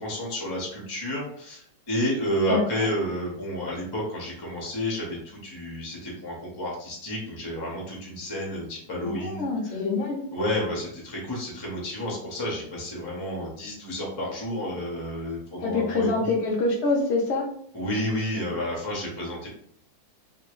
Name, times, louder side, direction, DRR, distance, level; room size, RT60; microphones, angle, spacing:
voice 1, 0.0-9.8 10.3-16.3 17.7-19.5, equal, 30° left, -3 dB, 0.4 m, -31 dB
voice 2, 2.5-2.8 9.0-10.2 15.6-17.5, left 3 dB, 80° left, -1 dB, 0.6 m, -25 dB
3.0 x 2.6 x 3.0 m, 0.64 s
omnidirectional pair, 2.2 m